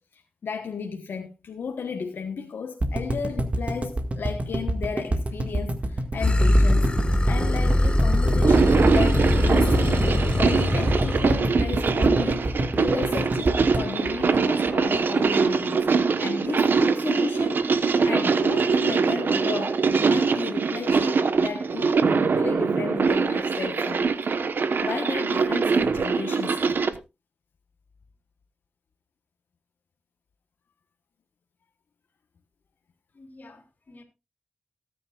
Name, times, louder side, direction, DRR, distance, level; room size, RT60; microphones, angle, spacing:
voice 1, 0.0-15.9 16.2-17.7 18.0-24.4 24.8-26.8, left 5 dB, 85° left, 1.2 m, -34 dB
sound 1, 2.8-15.0 15.3-15.4 15.6-15.7, right 1 dB, 40° right, 1.8 m, -27 dB
sound 2, 6.2-11.4, left 1 dB, 30° left, 1.5 m, -22 dB
sound 3, 8.3-27.0, right 5 dB, 75° right, 1.1 m, -23 dB
voice 2, 33.1-34.0, left 2 dB, 55° left, 3.1 m, -49 dB
18.5 x 9.7 x 2.4 m
wide cardioid pair, 70°, 4 cm